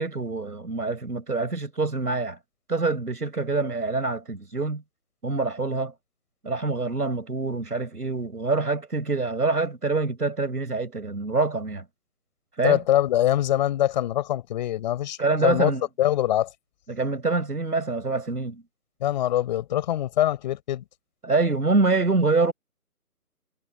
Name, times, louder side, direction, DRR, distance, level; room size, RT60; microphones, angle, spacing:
voice 1, 0.0-2.4 2.7-4.8 5.2-5.9 6.4-11.8 12.6-12.8 15.2-15.9 16.9-18.6 21.2-22.5, right 3 dB, 85° right, 6.4 m, -25 dB
voice 2, 12.6-15.2 15.4-15.7 16.0-16.5 19.0-20.8, left 12 dB, 30° left, 6.6 m, -23 dB
figure-of-eight pair, 155°, 45 cm